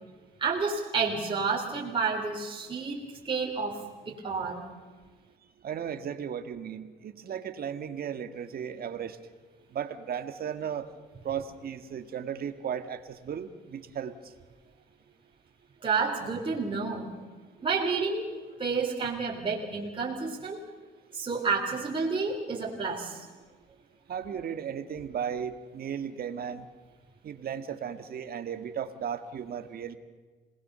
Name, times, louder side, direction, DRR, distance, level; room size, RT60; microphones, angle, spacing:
voice 1, 0.4-3.8 4.1-4.6 15.8-17.1 17.6-18.3 18.6-20.6 21.1-23.3, right 4 dB, 25° right, -2 dB, 3.6 m, -30 dB
voice 2, 5.6-9.2 9.7-10.9 11.2-14.1 24.1-26.7 27.2-29.9, right 8 dB, 55° right, 9 dB, 1.8 m, -35 dB
27.0 x 20.0 x 6.9 m, 1.4 s
cardioid pair, 100°, 19 cm